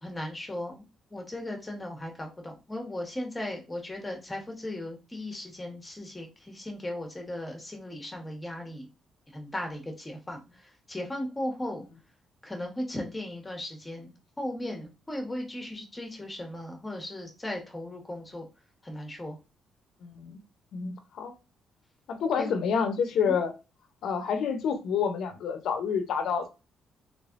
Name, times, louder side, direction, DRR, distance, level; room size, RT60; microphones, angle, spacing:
voice 1, 0.0-8.9 9.3-11.9 12.4-18.5 18.8-19.4 22.4-22.5 23.2-23.3, left 1 dB, 15° left, 1.2 m, -37 dB
voice 2, 20.0-20.4 20.7-21.3 22.1-23.5 24.0-26.5, left 6 dB, 75° left, 0.7 m, -28 dB
3.3 x 3.3 x 2.5 m
cardioid pair, 90°, 0 cm